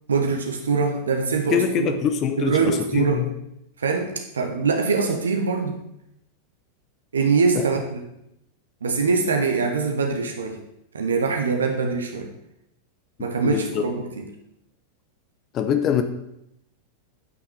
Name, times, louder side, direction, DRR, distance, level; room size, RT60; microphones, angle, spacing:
voice 1, 0.1-1.9 2.4-3.2 3.8-5.8 7.1-8.0 8.8-10.6 10.9-12.3 13.2-14.3, right 4 dB, 70° right, 4 dB, 1.3 m, -23 dB
voice 2, 1.5-3.3 7.5-7.6 13.4-13.8 15.5-16.0, left 8 dB, 30° left, 7 dB, 1.0 m, -24 dB
9.5 x 6.1 x 7.3 m, 0.82 s
figure-of-eight pair, 90°, 0 cm